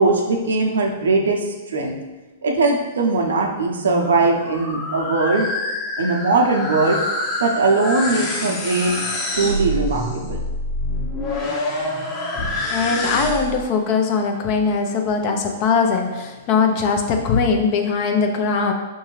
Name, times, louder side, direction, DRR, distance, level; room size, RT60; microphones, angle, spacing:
voice 1, 0.0-2.0 2.4-5.5 6.0-7.0 7.4-9.0 9.4-10.4, right 3 dB, 85° right, 1 dB, 0.7 m, -20 dB
sound 1, 3.8-13.6, left 1 dB, 25° left, 1.0 m, -26 dB
voice 2, 12.7-18.7, left 5 dB, 45° left, 3 dB, 0.7 m, -20 dB
5.7 x 2.7 x 3.1 m, 1.2 s
hypercardioid pair, 125°, 0 cm